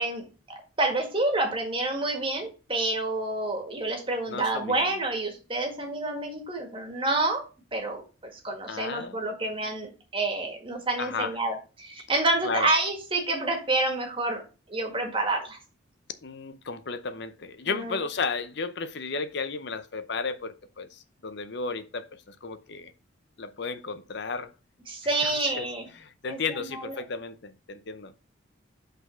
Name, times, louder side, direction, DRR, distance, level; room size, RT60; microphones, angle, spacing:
voice 1, 0.0-7.4 7.7-14.4 14.7-15.6 17.7-18.0 24.9-25.9 26.2-26.9, right 2 dB, 25° right, 1.7 m, -28 dB
voice 2, 4.3-4.8 8.7-9.7 11.0-11.4 12.4-12.7 16.2-22.9 23.4-24.5 25.2-25.7 26.0-28.1, left 4 dB, 60° left, 0.6 m, -34 dB
5.4 x 4.0 x 5.7 m
head